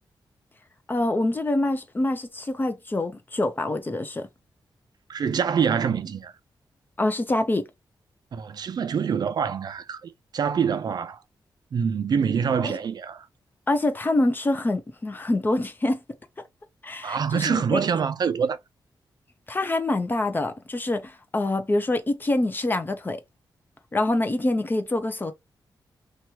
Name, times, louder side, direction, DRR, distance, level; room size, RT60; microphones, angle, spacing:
voice 1, 0.9-4.3 7.0-7.7 12.6-12.7 13.7-16.0 16.8-17.8 19.5-23.2 23.9-25.3, left 2 dB, 25° left, 0.5 m, -25 dB
voice 2, 5.1-6.3 8.3-11.2 11.7-13.3 17.0-18.6, right 7 dB, 55° right, 0.4 m, -25 dB
3.0 x 2.3 x 2.8 m
wide cardioid pair, 110°, 8 cm